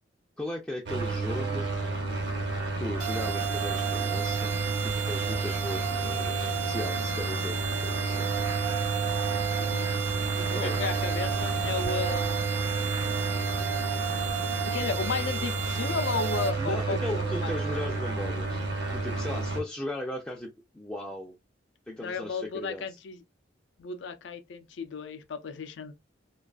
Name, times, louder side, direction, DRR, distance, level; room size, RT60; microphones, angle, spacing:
voice 1, 0.4-1.7 2.8-4.5 4.8-8.3 10.5-10.8 16.6-18.6 18.9-21.3 21.9-23.0, left 1 dB, 5° left, 0.3 m, -37 dB
sound 1, 0.9-19.6, right 3 dB, 65° right, 0.8 m, -30 dB
sound 2, 3.0-16.5, right 9 dB, 85° right, 0.4 m, -34 dB
voice 2, 9.6-9.9 10.4-12.6 14.7-17.6 22.0-23.2 23.8-25.9, left 4 dB, 75° left, 0.4 m, -34 dB
2.4 x 2.3 x 2.3 m
head